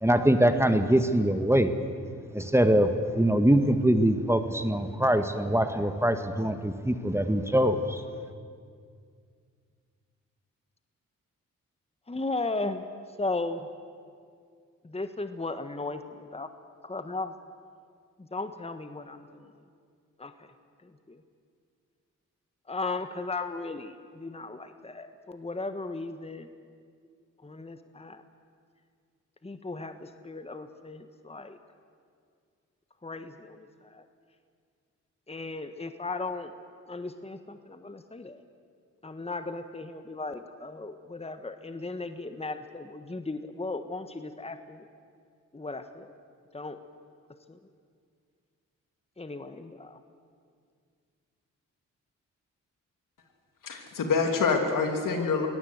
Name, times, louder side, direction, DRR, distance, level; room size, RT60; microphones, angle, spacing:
voice 1, 0.0-1.7 2.3-8.0, right 1 dB, 10° right, 8 dB, 1.7 m, -23 dB
voice 2, 12.1-12.9 13.2-13.7 14.8-16.5 16.8-17.3 18.2-19.5 20.2-20.5 20.8-21.2 22.7-26.5 27.4-28.2 29.4-31.6 33.0-34.0 35.3-36.5 36.9-38.4 39.0-44.8 45.5-46.1 46.5-46.8 47.5-47.6 49.2-50.0, left 3 dB, 20° left, 9 dB, 1.4 m, -36 dB
voice 3, 53.6-55.5, left 4 dB, 75° left, 4 dB, 3.0 m, -26 dB
23.0 x 18.0 x 8.0 m, 2.2 s
supercardioid pair, 50°, 32 cm